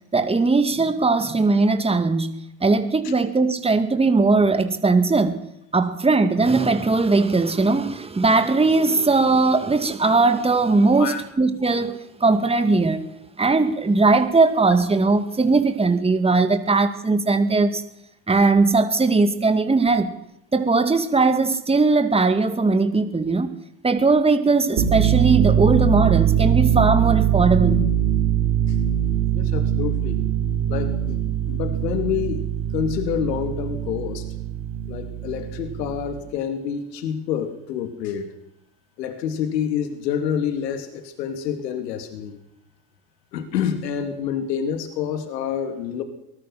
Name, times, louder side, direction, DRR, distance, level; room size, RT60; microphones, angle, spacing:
voice 1, 0.1-5.4 5.7-13.0 13.4-17.8 18.3-20.1 20.5-23.5 23.8-27.8, right 3 dB, 10° right, 2.2 m, -19 dB
sound 1, 24.7-36.2, right 10 dB, 70° right, 7.6 m, -22 dB
voice 2, 29.3-30.2 30.7-31.2 31.5-32.5 32.7-34.2 34.9-38.3 39.0-42.4 43.3-46.0, left 8 dB, 80° left, 3.1 m, -27 dB
24.0 x 19.5 x 6.0 m
hypercardioid pair, 85°, 49 cm